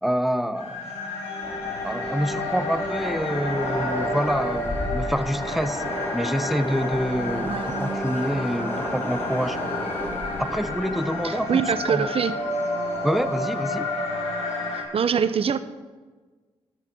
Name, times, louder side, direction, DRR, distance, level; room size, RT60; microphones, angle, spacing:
voice 1, 0.0-0.9 1.8-5.8 6.1-9.6 10.4-11.6 11.9-12.1 13.0-13.9, equal, ahead, 11 dB, 0.9 m, -27 dB
sound 1, 0.6-14.8, left 2 dB, 85° left, 4.6 m, -30 dB
Train, 1.4-13.7, left 1 dB, 20° left, 4.1 m, -34 dB
voice 2, 11.2-12.4 14.9-15.6, right 7 dB, 60° right, 12 dB, 0.9 m, -23 dB
13.5 x 13.0 x 5.4 m, 1.3 s
supercardioid pair, 55°, 11 cm